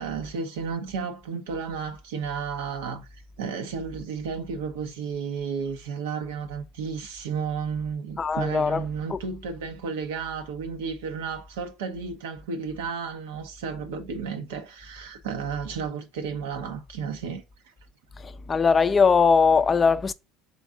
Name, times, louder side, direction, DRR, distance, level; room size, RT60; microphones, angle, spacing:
voice 1, 0.0-3.1 3.4-17.4, right 6 dB, 90° right, 0.8 m, -32 dB
voice 2, 8.2-9.2 18.2-20.1, left 5 dB, 30° left, 0.3 m, -21 dB
3.9 x 3.5 x 2.4 m
supercardioid pair, 90°, 0 cm